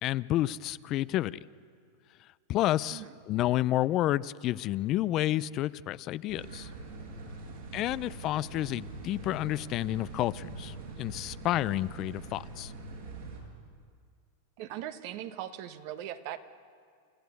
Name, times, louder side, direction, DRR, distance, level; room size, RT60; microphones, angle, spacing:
voice 1, 0.0-1.4 2.5-6.7 7.7-12.7, left 14 dB, 45° left, 17 dB, 0.5 m, -30 dB
sound 1, 6.3-13.4, right 3 dB, 75° right, 6.5 m, -43 dB
voice 2, 7.4-7.9 14.6-16.4, right 12 dB, 55° right, 9 dB, 1.3 m, -40 dB
28.5 x 14.5 x 8.2 m, 2.1 s
hypercardioid pair, 100°, 0 cm